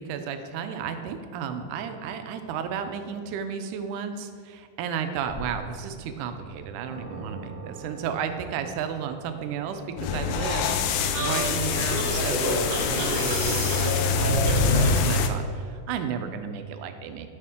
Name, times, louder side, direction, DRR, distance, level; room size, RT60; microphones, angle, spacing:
voice 1, 0.0-17.3, right 7 dB, 80° right, 7 dB, 2.1 m, -33 dB
sound 1, 5.3-5.8 6.3-6.4 6.9-11.5, right 2 dB, 30° left, 0.6 m, -44 dB
sound 2, 10.0-15.3, left 6 dB, 80° left, 1.8 m, -26 dB
sound 3, 11.1-15.1, equal, 50° right, 1.2 m, -27 dB
9.4 x 6.6 x 3.6 m, 2.3 s
omnidirectional pair, 3.8 m